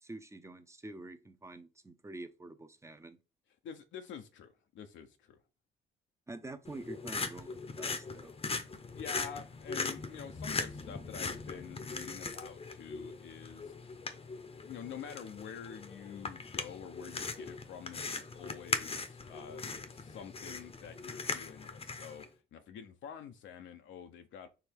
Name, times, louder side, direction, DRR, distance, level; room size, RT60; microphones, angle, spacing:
voice 1, 0.0-3.2 6.3-8.3, right 2 dB, 15° right, 0.6 m, -47 dB
voice 2, 3.6-5.4 8.9-13.7 14.6-24.5, left 8 dB, 70° left, 0.6 m, -47 dB
sound 1, 6.6-22.2, left 4 dB, 30° left, 0.7 m, -40 dB
4.7 x 3.2 x 3.5 m
cardioid pair, 90°, 20 cm